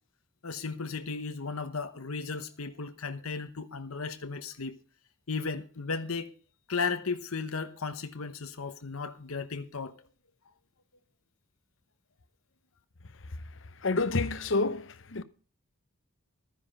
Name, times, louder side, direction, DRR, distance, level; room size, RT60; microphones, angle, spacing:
voice 1, 0.4-4.7 5.3-6.3 6.7-9.9, left 4 dB, 85° left, 1.1 m, -35 dB
voice 2, 13.8-15.2, left 3 dB, 65° left, 0.9 m, -28 dB
12.0 x 10.0 x 5.3 m
head